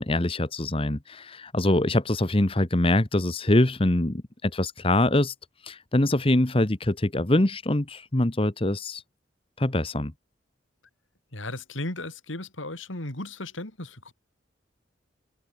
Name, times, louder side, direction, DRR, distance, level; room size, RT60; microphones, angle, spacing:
voice 1, 0.0-5.3 5.6-9.0 9.6-10.1, left 1 dB, 30° left, 1.2 m, -24 dB
voice 2, 11.3-14.1, left 2 dB, 85° left, 4.4 m, -35 dB
head